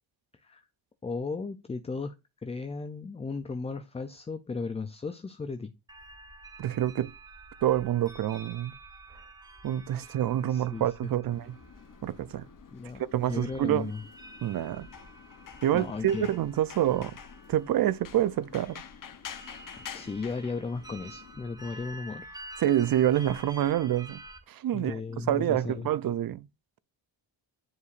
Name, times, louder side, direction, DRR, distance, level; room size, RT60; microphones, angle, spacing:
voice 1, 1.0-2.1 2.4-5.7 10.0-10.1 10.5-11.1 12.7-13.0 13.3-14.0 15.7-16.3 19.9-22.4 24.7-25.9, left 4 dB, 15° left, 0.3 m, -35 dB
sound 1, 5.9-24.4, right 2 dB, 10° right, 0.8 m, -49 dB
voice 2, 6.6-7.1 7.6-8.7 9.6-11.6 12.0-12.5 13.1-13.9 14.4-14.9 15.6-17.1 17.5-18.8 22.6-24.2 24.5-26.5, right 12 dB, 50° right, 0.5 m, -27 dB
sound 2, 11.3-21.4, left 8 dB, 45° left, 0.8 m, -48 dB
9.8 x 4.6 x 2.5 m
wide cardioid pair, 135°, 47 cm